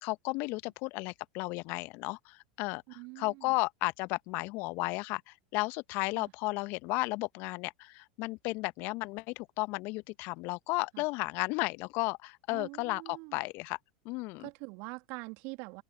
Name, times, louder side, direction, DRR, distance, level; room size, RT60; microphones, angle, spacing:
voice 1, 0.0-13.8 14.0-14.5, left 25 dB, 50° left, 1.1 m, -34 dB
voice 2, 2.9-3.5 6.2-6.3 10.9-11.0 12.5-13.4 14.4-15.8, right 29 dB, 55° right, 2.4 m, -44 dB
figure-of-eight pair, 85°, 5 cm